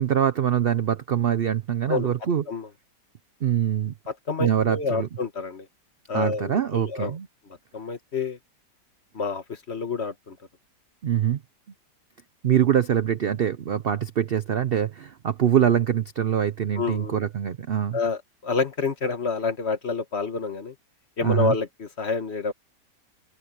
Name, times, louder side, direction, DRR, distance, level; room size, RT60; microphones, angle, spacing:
voice 1, 0.0-2.4 3.4-3.9 4.4-5.1 6.1-7.3 11.0-11.4 12.4-18.0 21.2-21.5, right 9 dB, 65° right, 0.5 m, -24 dB
voice 2, 4.1-5.7 6.1-7.1 7.7-8.4 9.1-10.4 16.8-17.2 17.9-20.7 21.2-22.5, left 4 dB, 40° left, 1.6 m, -28 dB
open air
omnidirectional pair, 1.8 m